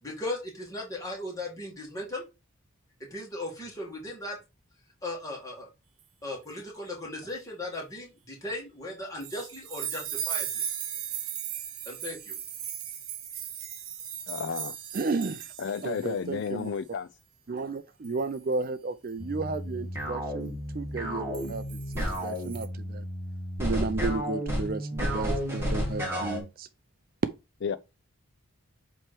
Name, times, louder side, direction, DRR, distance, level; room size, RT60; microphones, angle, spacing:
voice 1, 0.0-2.2 3.0-4.4 5.0-5.7 6.2-10.6 11.9-12.4, left 1 dB, 15° left, 2.0 m, -37 dB
sound 1, 9.2-16.2 16.4-16.7 18.0-18.3 21.3-22.7, right 9 dB, 80° right, 1.0 m, -37 dB
voice 2, 14.3-14.7 15.6-17.1 27.6-27.8, left 6 dB, 55° left, 0.3 m, -32 dB
voice 3, 14.9-15.5 15.8-16.7 17.5-23.1 23.6-26.7, right 3 dB, 40° right, 0.4 m, -33 dB
sound 2, 19.2-26.4, equal, 10° right, 2.1 m, -32 dB
7.5 x 3.1 x 4.7 m
head